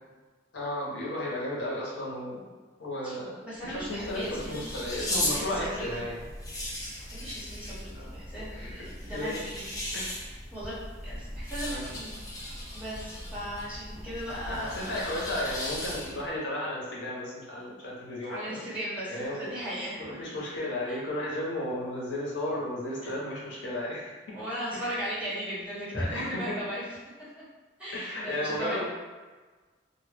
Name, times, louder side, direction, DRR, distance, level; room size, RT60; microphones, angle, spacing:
voice 1, 0.5-2.4 2.8-3.4 3.6-6.3 7.9-9.4 9.9-10.2 11.6-12.0 14.5-18.6 19.1-19.4 20.0-24.1 24.7-25.0 25.9-26.4 27.9-28.9, left 1 dB, 85° left, -5 dB, 0.7 m, -34 dB
voice 2, 3.4-6.0 7.1-10.0 10.5-10.8 11.0-12.2 12.7-15.0 18.3-20.2 20.9-21.0 24.3-26.8 27.2-27.3 27.8-28.9, equal, 5° right, -12 dB, 1.0 m, -37 dB
sound 1, 3.6-16.3, left 1 dB, 20° left, 0.5 m, -37 dB
2.1 x 2.0 x 3.3 m, 1.4 s
head